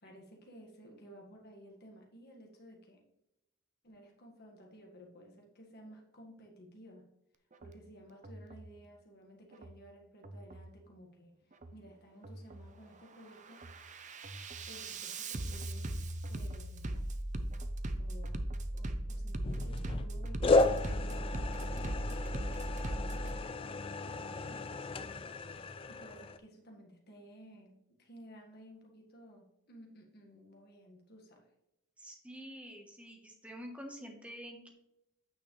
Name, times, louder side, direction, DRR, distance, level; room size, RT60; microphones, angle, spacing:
voice 1, 0.0-3.0 3.8-7.1 7.6-11.4 11.7-15.9 16.3-17.0 18.0-18.4 18.7-24.7 25.5-31.5, equal, 50° left, 1 dB, 1.8 m, -55 dB
Bass drum, 7.5-7.8 8.2-8.7 9.5-9.8 10.2-10.7 11.5-11.8 12.2-12.7 13.1-23.4, right 1 dB, 35° right, 0.6 m, -38 dB
sound 1, 19.4-20.1 20.4-26.4, left 3 dB, 25° left, 0.4 m, -33 dB
voice 2, 32.0-34.7, equal, 5° right, 2 dB, 1.2 m, -47 dB
9.1 x 6.3 x 3.3 m, 0.86 s
head